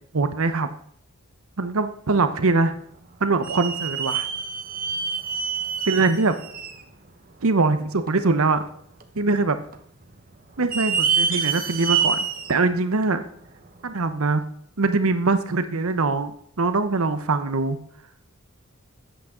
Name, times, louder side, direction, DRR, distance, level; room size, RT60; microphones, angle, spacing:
voice 1, 0.1-0.7 1.6-2.7 3.2-4.3 5.9-6.4 7.4-8.6 9.2-9.6 10.6-13.2 13.8-14.4 14.8-17.8, right 3 dB, 70° right, 10 dB, 0.9 m, -22 dB
sound 1, 2.6-2.8 3.4-6.8 7.3-7.4 8.1-8.2 9.0-9.5 9.7-9.8 10.6-12.6 13.0-13.1 14.1-14.2, right 6 dB, 40° right, 1.0 m, -26 dB
13.5 x 8.5 x 3.8 m, 0.65 s
head